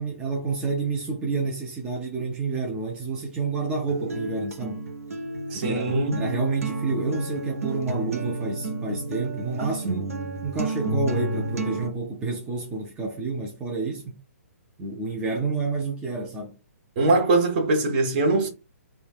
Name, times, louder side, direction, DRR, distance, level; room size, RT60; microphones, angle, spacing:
voice 1, 0.0-4.8 5.5-5.9 6.1-10.1 10.4-14.2 14.8-16.6, right 4 dB, 10° right, 0.5 m, -29 dB
Acoustic guitar, 3.9-11.9, right 2 dB, 65° right, 0.6 m, -30 dB
voice 2, 5.5-6.2 17.0-18.5, right 2 dB, 35° right, 0.8 m, -22 dB
3.2 x 2.2 x 2.4 m
figure-of-eight pair, 130°, 8 cm